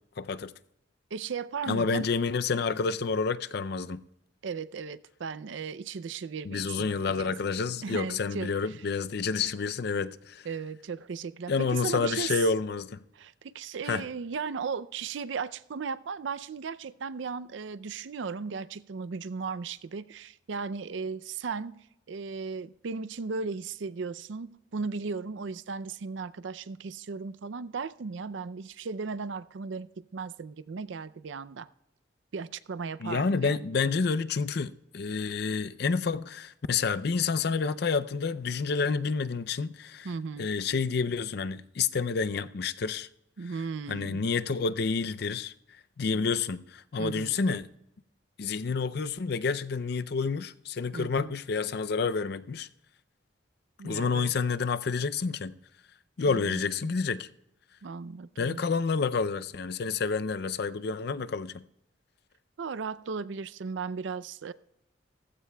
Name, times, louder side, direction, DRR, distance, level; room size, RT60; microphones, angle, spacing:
voice 1, 0.2-0.5 1.7-4.0 6.4-10.5 11.5-13.0 13.9-14.1 33.0-40.1 40.4-43.1 43.9-45.5 46.0-47.7 48.4-52.7 53.8-55.6 56.2-57.3 58.4-61.6, left 5 dB, 55° left, 0.5 m, -29 dB
voice 2, 1.1-2.1 4.4-7.3 7.8-8.5 10.5-12.4 13.1-21.8 22.1-31.7 32.3-33.7 40.0-40.5 43.4-44.2 47.0-47.3 50.9-51.3 53.8-54.3 56.3-56.9 57.8-58.6 62.6-64.5, right 5 dB, 70° right, 0.4 m, -36 dB
17.5 x 15.0 x 2.3 m
head